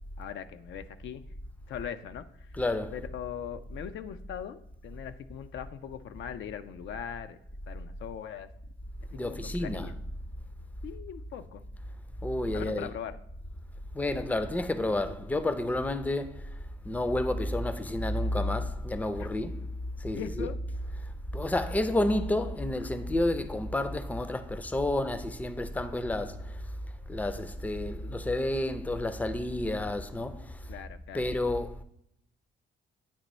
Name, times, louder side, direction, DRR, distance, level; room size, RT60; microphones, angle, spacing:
voice 1, 0.2-1.2 1.7-2.2 2.9-7.4 7.7-8.5 9.2-9.9 10.8-11.6 12.5-13.1 19.2-19.3 20.1-20.6 30.7-31.2, left 9 dB, 70° left, 0.5 m, -40 dB
voice 2, 2.5-3.0 9.1-9.9 12.2-12.9 13.9-16.4 16.8-19.6 20.0-20.5 21.3-26.6 27.1-30.4 31.1-31.8, left 1 dB, 10° left, 0.5 m, -30 dB
8.8 x 3.0 x 4.1 m
cardioid pair, 90°, 20 cm